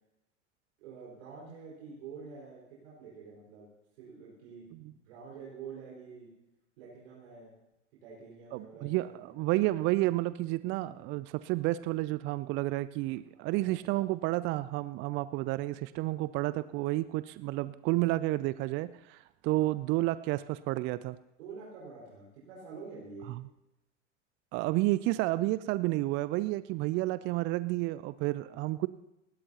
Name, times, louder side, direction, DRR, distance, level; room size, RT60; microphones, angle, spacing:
voice 1, 0.8-3.7 4.0-6.3 6.8-7.5 8.0-9.3 13.3-13.9 19.4-19.7 21.4-23.3 28.4-28.8, right 5 dB, 60° right, -6 dB, 5.1 m, -48 dB
voice 2, 8.5-21.2 23.3-23.4 24.5-28.9, right 18 dB, 30° right, 16 dB, 0.4 m, -31 dB
29.5 x 12.0 x 2.9 m, 0.93 s
figure-of-eight pair, 85°, 37 cm